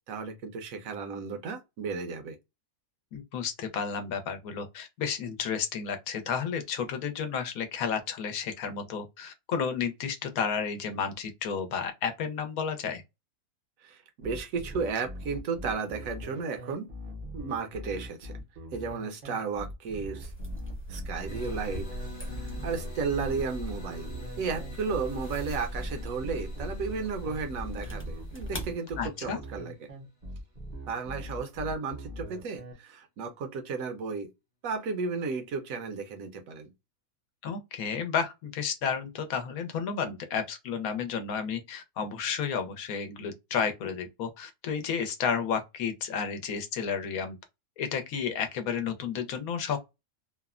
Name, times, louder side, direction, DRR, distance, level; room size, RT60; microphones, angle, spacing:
voice 1, 0.1-2.4 13.8-16.9 17.3-18.3 18.7-20.3 20.9-21.9 22.3-24.1 24.4-29.7 30.9-34.3 34.6-36.7, right 5 dB, 75° right, 1.0 m, -34 dB
voice 2, 3.1-13.0 29.0-29.4 37.4-47.4 47.8-49.8, left 6 dB, 75° left, 1.1 m, -32 dB
sound 1, 14.2-32.7, equal, 50° right, 0.5 m, -41 dB
sound 2, 20.2-28.7, equal, 10° left, 0.6 m, -39 dB
sound 3, 21.2-30.0, left 2 dB, 45° left, 1.1 m, -49 dB
3.2 x 2.1 x 2.3 m
omnidirectional pair, 1.5 m